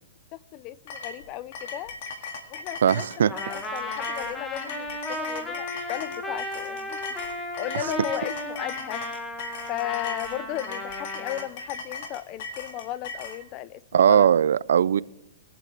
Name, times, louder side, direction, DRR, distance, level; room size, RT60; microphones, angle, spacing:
voice 1, 0.3-1.9 2.5-7.0 7.6-9.1 9.7-14.3, left 14 dB, 35° left, 0.4 m, -35 dB
sound 1, 0.9-13.4, left 4 dB, 55° left, 1.9 m, -38 dB
voice 2, 2.8-3.3 7.7-7.9 13.9-15.0, right 8 dB, 80° right, 0.3 m, -19 dB
Trumpet, 3.3-11.5, left 1 dB, 15° left, 1.3 m, -35 dB
21.0 x 7.7 x 3.3 m
hypercardioid pair, 140°, 0 cm